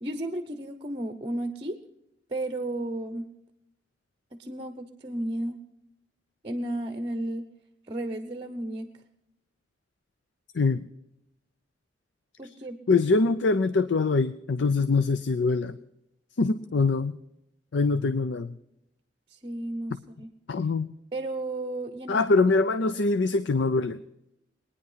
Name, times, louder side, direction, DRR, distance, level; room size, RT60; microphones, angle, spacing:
voice 1, 0.0-1.8 2.3-3.3 4.3-5.6 6.4-7.5 7.9-8.9 12.4-12.8 19.3-20.3 21.1-22.2, right 1 dB, 30° right, 9 dB, 0.8 m, -33 dB
voice 2, 10.5-10.8 12.9-15.8 16.4-17.1 17.7-18.5 20.5-20.9 22.1-24.0, left 3 dB, 80° left, 12 dB, 0.5 m, -23 dB
21.5 x 9.9 x 5.7 m, 0.85 s
head